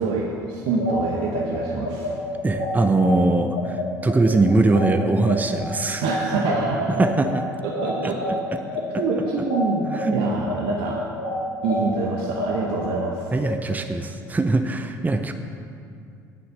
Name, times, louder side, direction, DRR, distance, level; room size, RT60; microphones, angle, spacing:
voice 1, 0.0-2.1 6.0-7.0 7.6-8.2 8.8-11.1 11.6-13.3, right 3 dB, 60° right, -1 dB, 1.0 m, -26 dB
sound 1, 0.7-10.1 10.4-13.5, left 2 dB, 85° left, 2.0 m, -29 dB
voice 2, 2.4-6.0 7.0-7.4 8.0-8.4 8.9-9.0 9.9-10.2 13.3-15.3, right 2 dB, 15° right, 7 dB, 0.7 m, -21 dB
9.8 x 7.0 x 6.5 m, 2.3 s
hypercardioid pair, 60°, 10 cm